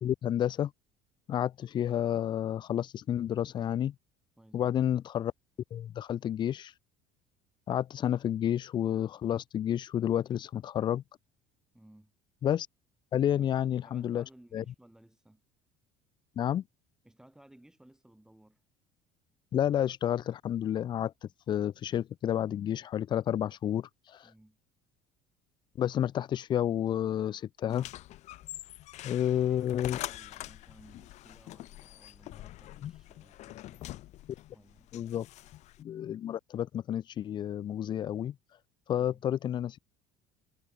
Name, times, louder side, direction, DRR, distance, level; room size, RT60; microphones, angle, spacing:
voice 1, 0.0-0.7 1.3-3.9 4.5-5.3 5.7-6.7 7.7-11.0 12.4-12.7 13.1-14.2 14.5-14.6 16.4-16.6 19.5-24.3 25.8-27.9 29.0-30.0 32.8-32.9 34.9-35.3 35.8-38.4 38.9-39.8, left 10 dB, 30° left, 0.6 m, -30 dB
voice 2, 4.4-4.8 11.7-12.1 13.4-13.5 13.8-15.4 17.0-18.6 24.2-24.6 29.0-34.0 34.5-34.9 38.9-39.2, right 1 dB, 5° right, 6.3 m, -59 dB
sound 1, 27.7-35.8, left 16 dB, 50° left, 1.7 m, -45 dB
cardioid pair, 155°, 15 cm